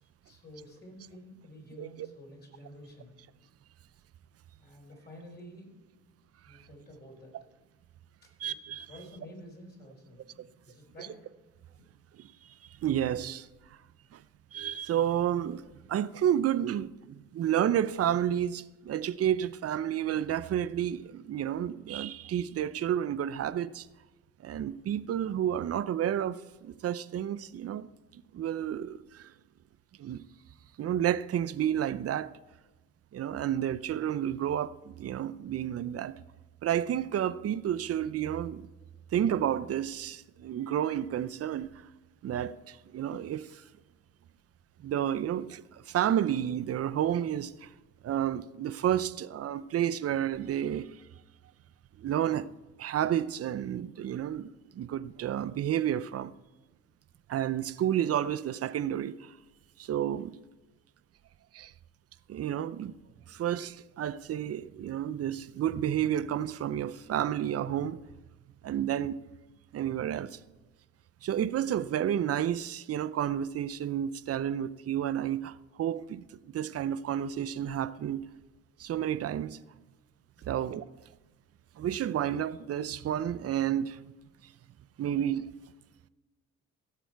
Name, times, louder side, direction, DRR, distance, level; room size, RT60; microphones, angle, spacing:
voice 1, 0.2-3.1 4.6-6.0 6.4-7.3 8.2-8.3 8.9-11.2 80.3-80.6, equal, 35° left, 4.6 m, -50 dB
voice 2, 8.4-8.9 11.0-11.1 12.2-12.5 12.8-13.5 14.1-14.2 14.5-23.9 24.4-29.3 30.0-30.2 30.8-32.3 33.1-36.1 36.6-38.7 39.1-41.9 42.2-43.6 44.8-47.7 48.0-50.9 52.0-52.5 52.8-56.3 57.3-59.3 59.8-60.4 61.5-61.7 62.3-62.9 63.3-68.0 68.6-69.2 69.7-70.4 71.2-76.2 76.5-78.2 78.8-79.6 80.5-80.9 81.8-84.0 84.4-84.5 85.0-85.5, right 10 dB, 50° right, 0.6 m, -31 dB
16.5 x 6.9 x 4.6 m
cardioid pair, 90°, 30 cm